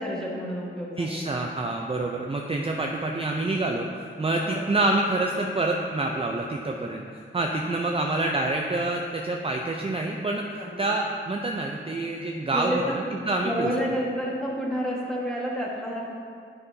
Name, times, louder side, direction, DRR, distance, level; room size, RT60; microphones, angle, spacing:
voice 1, 0.0-1.2 4.4-4.7 10.6-10.9 12.5-13.0 13.4-16.0, equal, 5° left, -4 dB, 1.4 m, -30 dB
voice 2, 1.0-7.0 7.3-10.4 10.8-13.7, right 2 dB, 30° right, 0 dB, 0.4 m, -27 dB
9.8 x 5.6 x 2.7 m, 2.3 s
wide cardioid pair, 75°, 21 cm